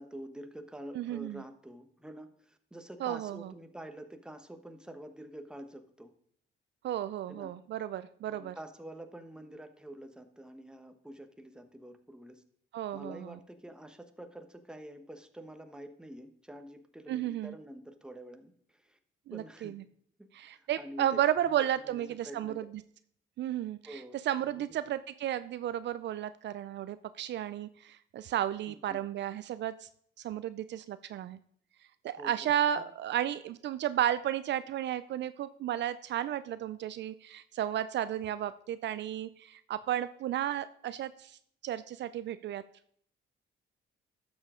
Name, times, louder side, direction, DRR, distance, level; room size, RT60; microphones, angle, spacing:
voice 1, 0.0-6.1 7.3-7.5 8.3-12.4 12.9-19.0 19.3-19.8 20.2-22.6 23.8-24.6 28.7-29.0 32.2-32.5 32.7-32.9, right 1 dB, 5° right, 6 dB, 1.0 m, -47 dB
voice 2, 1.0-1.4 3.0-3.5 6.8-8.5 12.7-13.3 17.1-17.5 19.3-19.8 20.3-22.7 23.4-24.0 24.3-29.9 30.2-31.4 32.0-41.4 41.6-42.6, right 11 dB, 65° right, 14 dB, 0.4 m, -33 dB
12.0 x 7.0 x 3.7 m, 0.62 s
cardioid pair, 90°, 20 cm